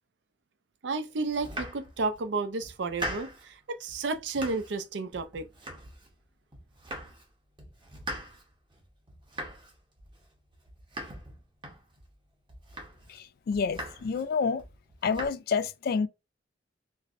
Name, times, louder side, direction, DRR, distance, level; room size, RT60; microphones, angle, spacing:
voice 1, 0.8-5.5, right 3 dB, 70° right, 0.5 m, -32 dB
Domestic sounds home sounds, 1.3-2.2 2.6-3.5 3.9-4.8 5.1-6.2 6.5-7.3 7.6-12.1 12.5-13.2 13.5-14.3 14.6-15.3, right 1 dB, 25° right, 0.9 m, -41 dB
voice 2, 13.1-14.6 15.0-16.1, left 5 dB, 55° left, 0.3 m, -29 dB
4.3 x 2.1 x 2.4 m
head